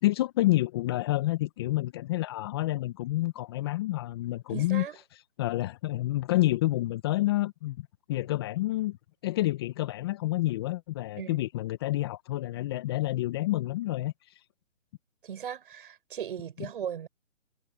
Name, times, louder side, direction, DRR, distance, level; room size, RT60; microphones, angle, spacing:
voice 1, 0.0-4.9 5.1-9.0 9.2-14.4 16.6-16.7, left 17 dB, 20° left, 1.3 m, -29 dB
voice 2, 4.5-5.0 11.2-11.4 15.2-17.1, right 9 dB, 40° right, 7.3 m, -37 dB
figure-of-eight pair, 150°, 39 cm